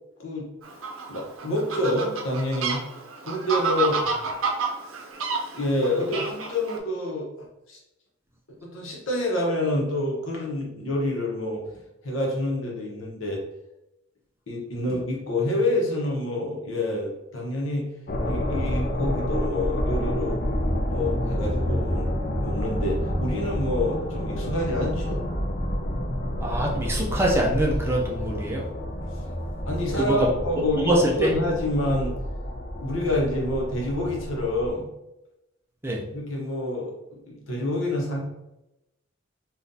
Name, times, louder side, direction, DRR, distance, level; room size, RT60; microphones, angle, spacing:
Fowl, 0.6-6.8, right 4 dB, 90° right, 0.6 m, -30 dB
voice 1, 1.1-2.8 3.2-4.1 5.5-7.8 8.6-11.6 12.0-13.4 14.5-17.9 18.2-20.4 20.9-22.1 22.4-25.3 29.6-32.1 32.8-34.9 36.1-38.2, left 1 dB, 80° left, -1 dB, 1.0 m, -27 dB
sound 1, 18.1-34.7, equal, 45° left, 0.5 m, -29 dB
voice 2, 26.4-28.6 30.0-30.3 30.8-31.0 35.8-36.0, right 1 dB, 10° right, -2 dB, 0.5 m, -24 dB
3.7 x 2.5 x 2.7 m, 0.91 s
head